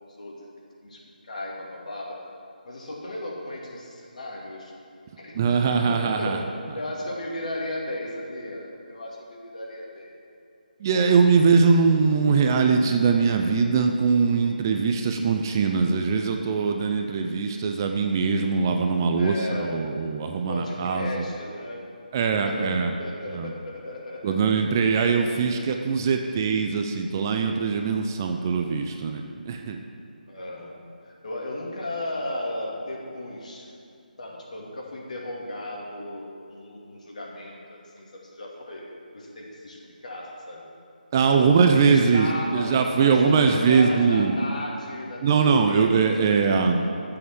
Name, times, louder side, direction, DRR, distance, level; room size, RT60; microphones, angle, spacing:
voice 1, 0.2-0.5 0.8-2.2 2.6-4.7 5.2-6.4 6.7-10.1 11.6-11.7 19.1-19.8 20.3-21.8 22.4-24.5 30.3-30.8 31.0-33.7 34.2-38.9 39.1-40.7 41.4-45.3 45.7-45.9 46.2-46.7, left 1 dB, 50° left, -2 dB, 2.6 m, -35 dB
voice 2, 5.3-6.4 10.8-21.2 22.1-22.9 23.3-23.5 24.2-29.8 41.1-44.3 45.2-46.8, right 5 dB, 25° right, 4 dB, 0.5 m, -22 dB
12.5 x 7.8 x 6.2 m, 2.5 s
figure-of-eight pair, 150°, 5 cm